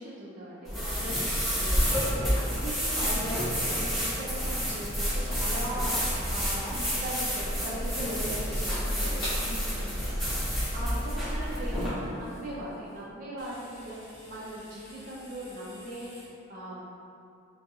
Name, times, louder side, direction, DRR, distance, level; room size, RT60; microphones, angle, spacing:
voice 1, 0.0-16.8, equal, 40° right, -7 dB, 0.3 m, -39 dB
sound 1, 0.6-11.9, equal, ahead, 0.8 m, -29 dB
sound 2, 4.5-12.9 13.4-16.3, equal, 80° left, 0.8 m, -45 dB
2.4 x 2.2 x 2.6 m, 2.6 s
head